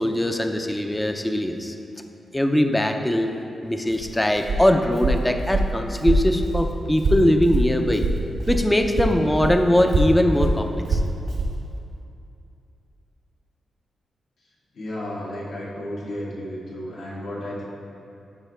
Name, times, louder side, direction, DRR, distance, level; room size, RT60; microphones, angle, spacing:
voice 1, 0.0-1.7 2.3-3.3 3.6-8.0 8.5-11.0, left 1 dB, 10° left, 5 dB, 0.5 m, -21 dB
Walk footsteps, 3.9-8.7 8.9-11.6, right 2 dB, 65° right, 1.3 m, -24 dB
voice 2, 14.7-17.6, left 1 dB, 75° left, -5 dB, 1.8 m, -33 dB
12.0 x 4.5 x 3.4 m, 2.7 s
cardioid pair, 85°, 0 cm